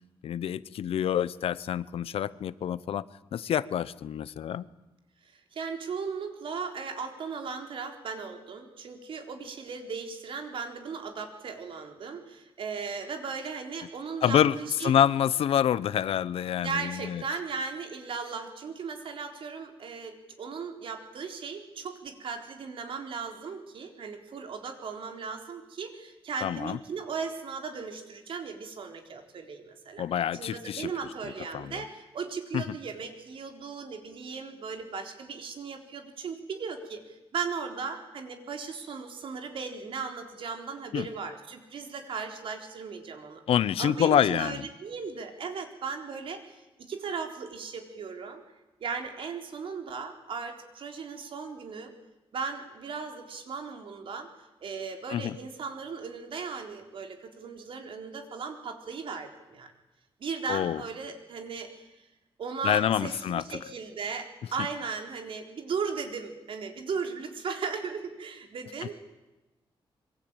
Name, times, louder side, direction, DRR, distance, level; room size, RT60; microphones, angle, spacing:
voice 1, 0.2-3.1 3.3-4.7 14.2-14.6 14.8-17.2 26.4-26.8 30.0-30.9 31.5-31.8 32.5-32.7 40.9-41.1 43.5-44.7 55.1-55.3 60.5-60.8 62.6-63.4, left 9 dB, 80° left, 17 dB, 0.9 m, -27 dB
voice 2, 5.3-14.9 16.6-43.4 43.8-46.6 46.9-48.4 48.8-51.9 52.3-54.3 54.6-59.7 60.2-61.9 62.4-69.0, right 5 dB, 65° right, 5 dB, 4.0 m, -37 dB
25.5 x 23.0 x 9.0 m, 1.1 s
wide cardioid pair, 140°, 10 cm